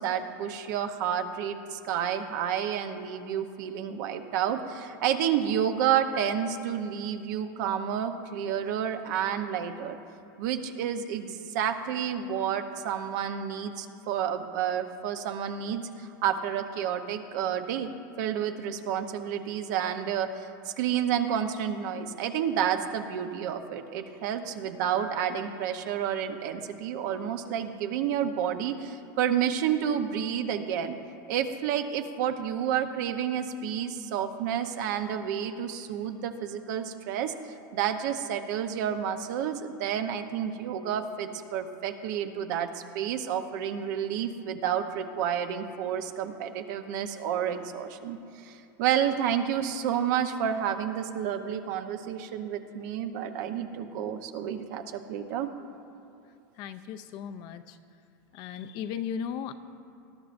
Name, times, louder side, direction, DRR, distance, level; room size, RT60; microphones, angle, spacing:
voice 1, 0.0-10.0 10.4-17.9 18.2-31.0 31.3-37.3 37.7-48.2 48.4-55.5, right 9 dB, 60° right, 7 dB, 0.9 m, -30 dB
voice 2, 56.6-57.8 58.3-59.5, left 8 dB, 40° left, 10 dB, 0.5 m, -36 dB
19.0 x 13.0 x 2.6 m, 2.6 s
supercardioid pair, 150°, 11 cm